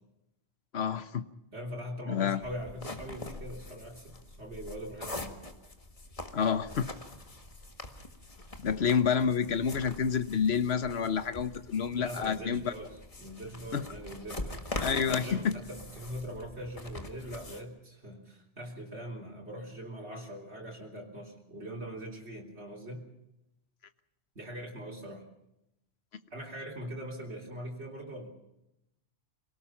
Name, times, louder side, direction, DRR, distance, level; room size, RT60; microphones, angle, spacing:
voice 1, 0.7-1.2 2.1-2.4 6.3-6.9 8.6-12.7 13.7-13.8 14.8-15.5, left 7 dB, 70° left, 12 dB, 1.3 m, -28 dB
voice 2, 1.5-5.4 12.0-14.7 15.1-23.1 24.4-25.2 26.3-28.3, equal, 85° right, -2 dB, 3.9 m, -42 dB
sound 1, 2.4-17.6, left 2 dB, 30° left, 1.8 m, -43 dB
26.5 x 18.5 x 5.8 m, 0.85 s
omnidirectional pair, 1.1 m